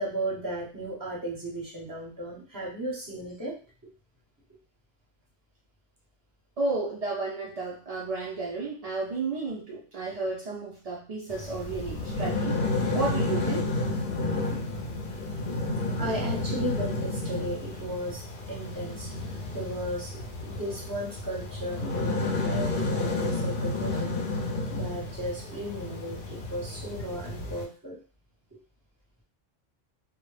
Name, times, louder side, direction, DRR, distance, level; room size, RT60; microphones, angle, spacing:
voice 1, 0.0-3.6 15.5-15.6 16.0-19.1 19.5-20.1 20.4-24.1 24.7-28.0, right 1 dB, 20° right, -3 dB, 0.6 m, -35 dB
voice 2, 6.6-12.6 12.9-13.7, right 3 dB, 60° right, -4 dB, 0.4 m, -32 dB
sound 1, 11.3-27.6, left 2 dB, 60° left, 0.6 m, -31 dB
2.1 x 2.0 x 3.1 m, 0.37 s
omnidirectional pair, 1.2 m